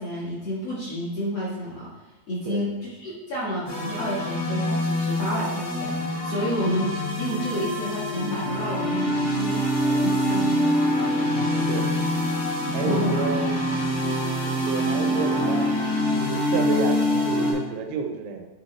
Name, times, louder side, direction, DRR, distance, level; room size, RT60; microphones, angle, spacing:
voice 1, 0.0-1.9 2.3-2.7 3.0-10.5 12.8-13.2, equal, 55° left, -7 dB, 1.7 m, -30 dB
sound 1, 3.7-17.5, left 1 dB, 85° left, 4.7 m, -25 dB
voice 2, 11.2-11.9 12.7-13.6 14.4-15.7 16.1-18.5, right 5 dB, 85° right, 4 dB, 2.7 m, -30 dB
9.5 x 3.5 x 4.3 m, 1.2 s
omnidirectional pair, 4.4 m